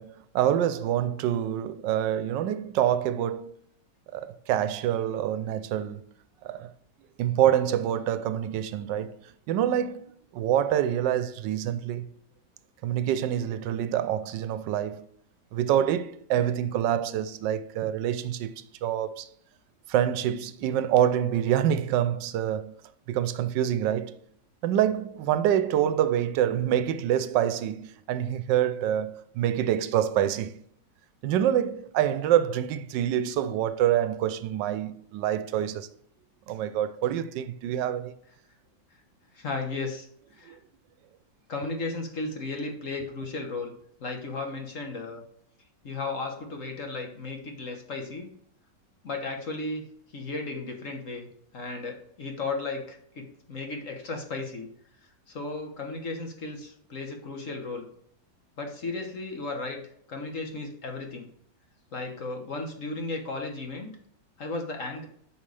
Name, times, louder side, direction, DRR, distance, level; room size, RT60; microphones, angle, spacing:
voice 1, 0.0-3.5 4.1-6.0 6.4-6.7 7.2-9.2 9.5-10.1 10.3-12.0 12.8-15.1 15.5-19.3 19.9-22.7 23.1-24.2 24.6-30.6 31.2-35.9 36.5-38.1 40.4-40.6, right 10 dB, 80° right, 1.2 m, -26 dB
voice 2, 39.3-40.1 40.3-40.6 41.5-43.7 44.0-45.2 45.8-48.3 49.0-49.8 50.1-51.3 51.5-54.7 55.3-57.9 58.6-59.8 60.1-61.3 61.9-63.9 64.4-65.1, left 3 dB, 50° left, 1.4 m, -35 dB
8.7 x 5.5 x 3.3 m
omnidirectional pair, 1.9 m